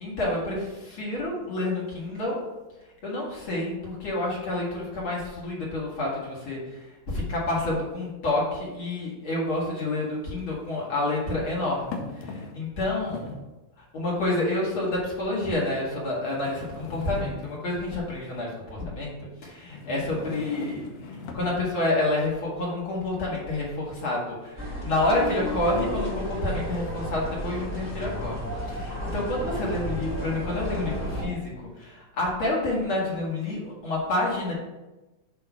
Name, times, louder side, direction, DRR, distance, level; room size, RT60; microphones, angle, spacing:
voice 1, 0.0-2.4 3.0-6.6 7.1-13.2 13.9-19.1 19.4-20.9 21.3-24.6 24.8-31.5 31.8-34.5, left 2 dB, 45° left, -5 dB, 2.3 m, -28 dB
sound 1, 8.9-9.0 10.4-11.1 11.9-12.7 13.0-13.5 14.3-14.4 15.2-15.3 16.3-17.7 19.6-21.6, left 3 dB, 75° left, 1.8 m, -40 dB
sound 2, 24.6-31.2, equal, 25° left, 1.9 m, -32 dB
8.1 x 3.0 x 5.8 m, 1.1 s
omnidirectional pair, 3.6 m